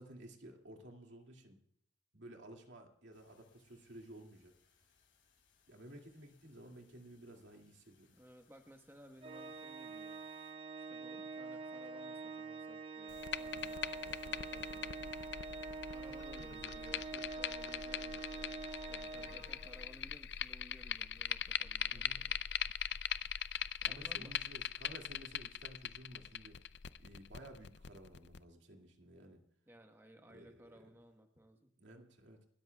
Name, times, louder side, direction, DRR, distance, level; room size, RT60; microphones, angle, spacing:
voice 1, 0.0-1.6 2.1-4.5 5.7-8.2 16.0-17.1 19.2-19.5 21.9-22.3 23.9-26.6 27.0-29.4 30.3-30.9 31.8-32.5, right 1 dB, 70° right, 2 dB, 2.3 m, -55 dB
sound 1, 3.1-10.5, left 6 dB, 80° left, 7.0 m, -74 dB
voice 2, 8.2-10.2 10.7-15.3 15.9-22.4 23.8-24.5 29.7-31.7, equal, 10° right, 4 dB, 1.1 m, -59 dB
Organ, 9.2-20.0, right 4 dB, 30° right, 0.7 m, -46 dB
sound 2, 13.1-28.4, left 10 dB, 60° left, 0.5 m, -41 dB
30.0 x 13.0 x 2.3 m, 0.69 s
head